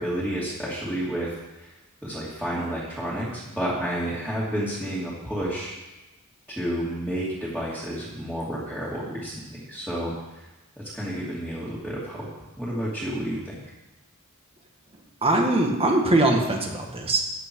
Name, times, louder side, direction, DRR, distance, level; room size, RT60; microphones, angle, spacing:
voice 1, 0.0-1.7 2.0-5.7 6.5-10.5 10.8-13.6, equal, 5° right, -8 dB, 2.5 m, -30 dB
voice 2, 15.2-17.2, right 2 dB, 25° right, 2 dB, 1.7 m, -21 dB
14.5 x 9.1 x 4.7 m, 1.1 s
head